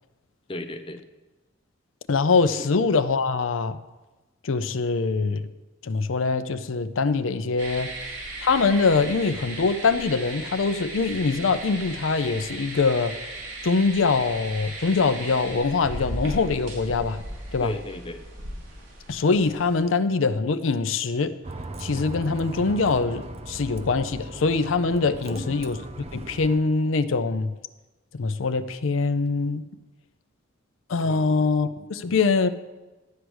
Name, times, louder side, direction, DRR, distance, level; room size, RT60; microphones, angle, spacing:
voice 1, 0.5-1.0 2.5-2.7 17.6-18.2 25.2-25.5 31.0-31.5, left 1 dB, 25° left, 8 dB, 0.7 m, -35 dB
voice 2, 2.1-3.8 4.4-5.5 5.8-7.9 8.4-13.1 13.6-17.2 17.5-17.7 19.1-21.3 21.8-25.8 26.1-27.5 28.1-29.6 30.9-32.5, left 4 dB, 80° left, 12 dB, 0.6 m, -23 dB
sound 1, 7.6-19.8, right 1 dB, 85° right, 4.2 m, -37 dB
Bus, 21.4-26.6, right 2 dB, 30° right, 0.6 m, -38 dB
11.5 x 4.7 x 8.0 m, 1.1 s
head